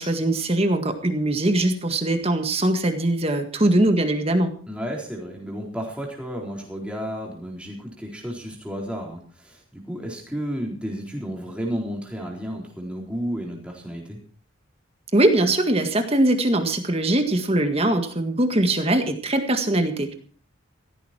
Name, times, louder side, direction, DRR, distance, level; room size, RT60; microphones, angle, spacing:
voice 1, 0.0-4.5 15.1-20.1, right 1 dB, 30° right, 7 dB, 1.8 m, -21 dB
voice 2, 4.7-14.2, equal, 5° right, -1 dB, 4.1 m, -32 dB
16.0 x 14.5 x 4.5 m, 0.43 s
head